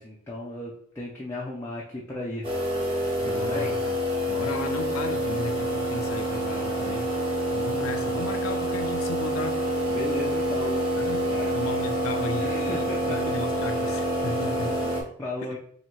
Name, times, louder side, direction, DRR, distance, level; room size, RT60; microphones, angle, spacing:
voice 1, 0.0-3.0 3.2-3.7 7.4-7.8 9.9-11.5 12.4-13.2 14.2-14.3 14.6-15.6, left 1 dB, 10° left, -5 dB, 0.5 m, -36 dB
sound 1, 2.4-15.0, equal, 25° right, 1.1 m, -27 dB
voice 2, 3.2-4.0 4.3-9.6 11.0-11.2 11.5-14.7, left 3 dB, 80° left, 7 dB, 0.6 m, -35 dB
2.9 x 2.8 x 4.4 m, 0.64 s
head